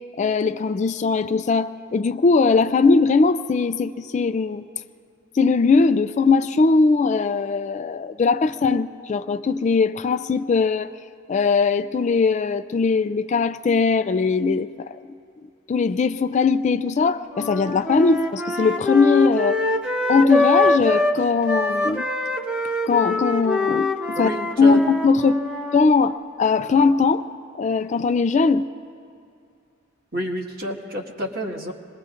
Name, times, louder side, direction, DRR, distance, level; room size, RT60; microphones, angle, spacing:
voice 1, 0.2-4.7 5.4-10.9 11.3-15.0 15.7-19.6 20.1-22.1 22.9-24.3 24.6-25.4 25.7-27.3 27.6-28.6, left 4 dB, 35° left, 10 dB, 0.3 m, -20 dB
sound 1, 17.3-21.2 21.5-25.8, left 2 dB, 5° right, 0.7 m, -24 dB
voice 2, 24.2-24.8 25.4-25.5 30.1-31.7, equal, 50° right, 0 dB, 1.7 m, -29 dB
27.0 x 21.0 x 2.5 m, 2.5 s
head